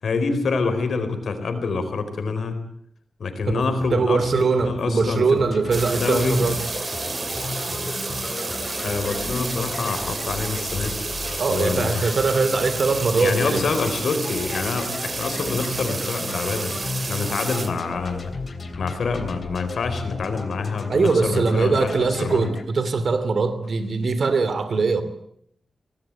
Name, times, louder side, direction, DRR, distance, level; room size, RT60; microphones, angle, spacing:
voice 1, 0.0-2.6 3.2-5.5 6.0-6.4 8.8-11.0 11.5-12.2 13.1-16.7 17.1-18.3 18.8-22.5, left 4 dB, 75° left, 8 dB, 4.5 m, -26 dB
sound 1, 3.4-9.6, right 1 dB, 10° right, 6.3 m, -42 dB
voice 2, 3.9-6.6 11.4-13.7 20.9-25.0, right 4 dB, 55° right, 11 dB, 2.9 m, -21 dB
sound 2, 5.4-22.6, left 3 dB, 45° left, 3.1 m, -35 dB
sound 3, 5.7-17.7, right 3 dB, 35° right, 3.2 m, -30 dB
24.0 x 19.0 x 9.1 m, 0.69 s
wide cardioid pair, 170°, 0 cm